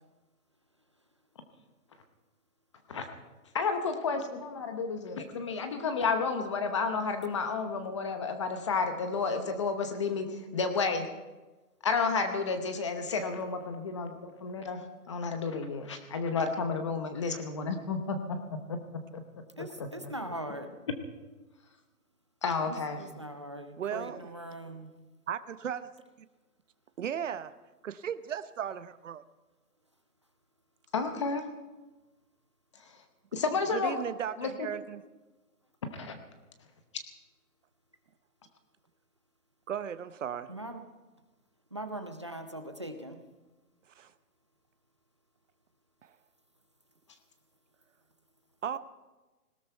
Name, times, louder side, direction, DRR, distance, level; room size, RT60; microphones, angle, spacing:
voice 1, 3.5-11.1 11.8-18.4 18.7-18.8 19.1-19.2 19.8-19.9 22.4-23.0 30.9-31.4 33.3-34.0 34.4-34.7 35.8-36.2, left 4 dB, 20° left, 7 dB, 0.9 m, -31 dB
voice 2, 19.6-20.7 22.7-24.9 40.5-40.8 41.7-43.2, right 1 dB, 20° right, 6 dB, 0.5 m, -41 dB
voice 3, 23.8-24.3 25.3-25.9 26.2-26.3 27.0-27.5 27.8-29.2 33.7-35.0 39.7-40.5 44.0-44.1 46.0-46.1 48.6-48.8, right 8 dB, 55° right, 13 dB, 0.8 m, -36 dB
19.0 x 17.0 x 4.4 m, 1.2 s
hypercardioid pair, 160°, 46 cm